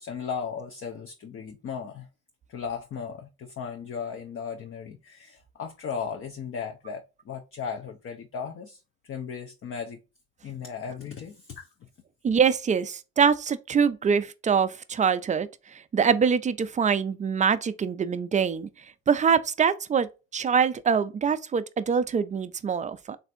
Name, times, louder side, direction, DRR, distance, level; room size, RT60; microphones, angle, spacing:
voice 1, 0.0-2.1 2.5-10.0 10.4-11.7, left 6 dB, 45° left, 0.6 m, -36 dB
voice 2, 12.2-18.7 19.1-23.2, right 6 dB, 25° right, 0.3 m, -24 dB
3.4 x 2.5 x 2.5 m
cardioid pair, 85°, 30 cm